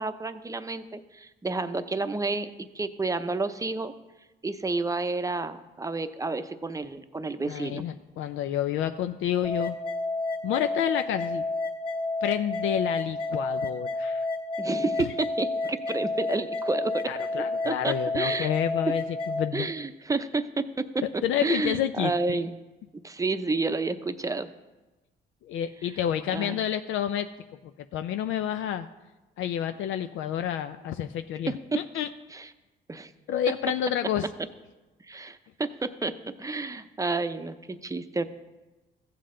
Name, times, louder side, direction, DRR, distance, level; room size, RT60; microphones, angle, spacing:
voice 1, 0.0-2.5 2.7-3.9 4.4-7.8 14.6-17.1 17.6-18.5 19.5-21.0 21.4-22.5 23.0-24.5 26.3-26.6 31.5-31.8 32.3-32.5 32.9-33.1 35.1-38.2, right 3 dB, 15° right, 10 dB, 0.6 m, -30 dB
voice 2, 7.5-9.7 10.4-11.4 12.2-14.3 15.0-15.1 17.1-19.7 21.2-22.4 25.4-27.3 27.9-28.9 29.4-32.1 33.3-34.3, left 10 dB, 80° left, 9 dB, 0.4 m, -29 dB
sound 1, 9.4-19.5, left 2 dB, 25° left, 1.8 m, -30 dB
15.0 x 7.6 x 3.7 m, 1.1 s
cardioid pair, 90°, 20 cm